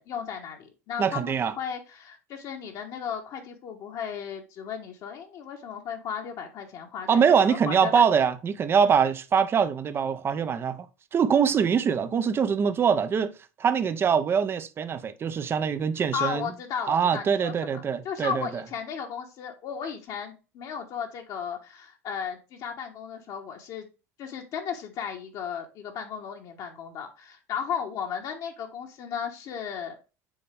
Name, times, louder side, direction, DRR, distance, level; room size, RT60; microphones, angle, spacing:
voice 1, 0.0-8.0 16.1-23.9 24.2-30.0, left 7 dB, 50° left, 1.3 m, -35 dB
voice 2, 1.0-1.5 7.1-10.9 11.1-13.3 13.6-16.5 16.9-18.6, right 7 dB, 30° right, 0.7 m, -23 dB
7.2 x 4.0 x 3.5 m
hypercardioid pair, 90°, 8 cm